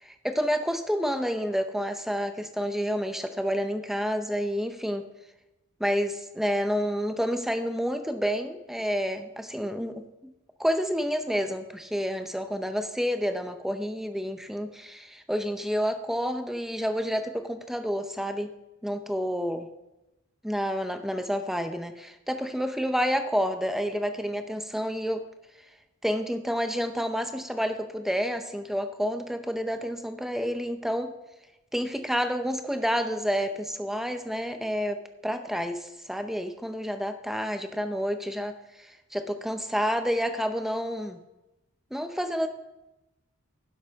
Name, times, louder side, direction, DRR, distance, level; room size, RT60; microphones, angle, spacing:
voice 1, 0.0-5.1 5.8-10.0 10.6-18.5 18.8-19.6 20.4-25.2 26.0-31.1 31.7-41.2 41.9-42.5, equal, ahead, 7 dB, 0.6 m, -29 dB
12.0 x 10.5 x 3.6 m, 0.96 s
head